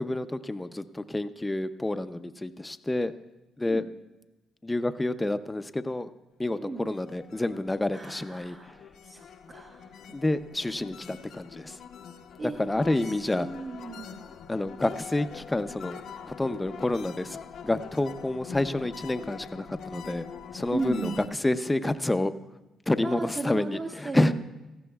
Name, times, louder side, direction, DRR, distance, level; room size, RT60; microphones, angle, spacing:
voice 1, 0.0-3.1 3.6-3.8 4.6-6.1 6.4-8.7 10.1-11.8 12.6-13.5 14.5-17.4 17.6-20.2 20.5-22.3 22.9-24.3, left 2 dB, 15° left, 11 dB, 0.5 m, -29 dB
sound 1, 6.8-21.3, left 7 dB, 70° left, 0.7 m, -44 dB
voice 2, 7.9-8.7 9.0-10.0 12.4-14.2 20.7-21.2 23.0-24.3, right 3 dB, 40° right, 0 dB, 1.2 m, -36 dB
17.5 x 14.5 x 2.3 m, 1.1 s
cardioid pair, 90°, 0 cm